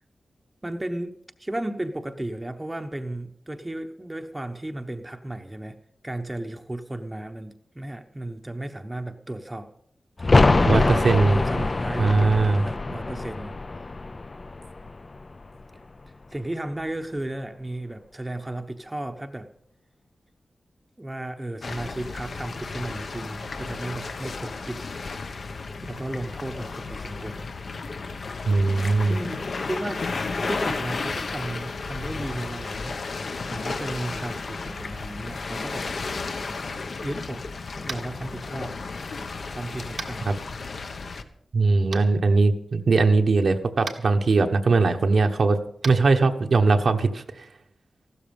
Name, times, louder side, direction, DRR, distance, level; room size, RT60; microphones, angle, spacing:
voice 1, 0.6-5.8 6.0-9.7 10.5-13.6 16.3-19.5 21.0-24.8 25.9-27.5 29.0-33.0 33.5-35.9 37.0-37.5 37.8-38.8 39.5-40.4, right 1 dB, 15° right, 6 dB, 0.9 m, -34 dB
sound 1, 10.2-15.8 16.0-16.1, left 3 dB, 35° left, 0.5 m, -24 dB
voice 2, 10.7-11.4 12.0-12.7 28.5-29.2 40.3-40.4 41.5-45.6 45.8-47.4, right 3 dB, 65° right, 5 dB, 1.1 m, -20 dB
sound 2, 21.6-41.2, left 4 dB, 65° left, 1.1 m, -33 dB
Tap, 37.8-38.1 40.0-40.1 41.9-42.0 43.8-44.0 45.8-45.9, right 5 dB, 80° right, 1.5 m, -34 dB
15.5 x 13.0 x 5.3 m, 0.68 s
wide cardioid pair, 120°, 0 cm